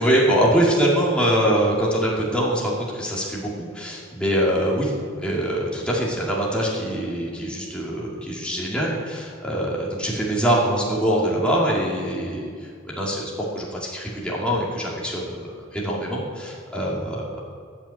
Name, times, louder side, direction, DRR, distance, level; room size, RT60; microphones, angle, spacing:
voice 1, 0.0-4.9 5.2-12.5 12.9-17.3, right 1 dB, 5° left, -5 dB, 2.1 m, -23 dB
13.0 x 5.8 x 8.2 m, 2.2 s
head